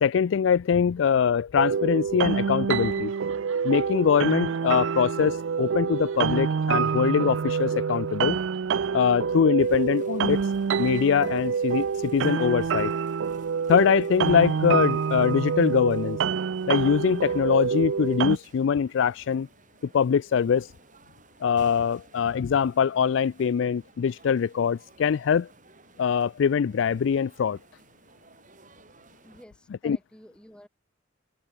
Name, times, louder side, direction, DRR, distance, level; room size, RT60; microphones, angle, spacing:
voice 1, 0.0-3.1 3.6-8.4 8.9-10.4 10.8-12.9 13.7-16.2 16.7-19.5 19.9-20.7 21.4-25.5 26.0-27.6 29.8-30.0, left 7 dB, 65° left, 0.3 m, -23 dB
sound 1, 1.6-18.4, right 6 dB, 65° right, 0.4 m, -27 dB
Laughter, 3.0-9.4, right 4 dB, 85° right, 2.0 m, -48 dB
sound 2, 9.6-29.4, right 3 dB, 40° right, 4.0 m, -56 dB
voice 2, 29.2-30.7, equal, 5° left, 2.8 m, -51 dB
head